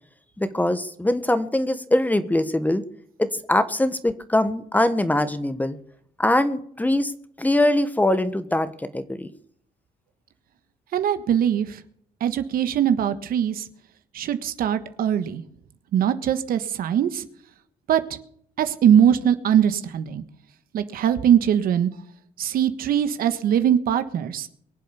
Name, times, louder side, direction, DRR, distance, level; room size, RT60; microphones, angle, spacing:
voice 1, 0.4-2.8 3.2-5.8 6.2-7.1 7.4-9.3, left 1 dB, 10° left, 12 dB, 1.3 m, -22 dB
voice 2, 10.9-11.8 12.2-13.6 14.1-15.4 15.9-17.2 17.9-18.0 18.6-20.2 20.7-21.9 22.4-24.5, right 9 dB, 70° right, 10 dB, 1.4 m, -21 dB
23.0 x 7.7 x 6.9 m, 0.65 s
cardioid pair, 85°, 16 cm